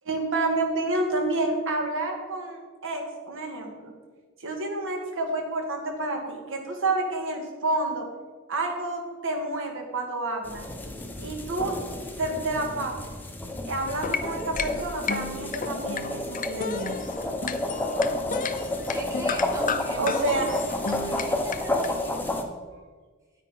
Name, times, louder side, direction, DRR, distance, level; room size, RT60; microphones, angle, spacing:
voice 1, 0.1-3.9 4.4-8.1 8.5-10.7 11.2-11.8 12.2-12.9 13.6-16.9 20.0-20.4, right 2 dB, 60° right, 3 dB, 1.8 m, -29 dB
sound 1, 10.4-22.4, left 1 dB, 10° left, 1.0 m, -31 dB
sound 2, 13.8-21.9, left 5 dB, 40° left, 0.5 m, -33 dB
voice 2, 18.9-20.4 20.9-22.6, right 1 dB, 15° right, 1 dB, 1.7 m, -40 dB
9.7 x 9.6 x 4.2 m, 1.5 s
head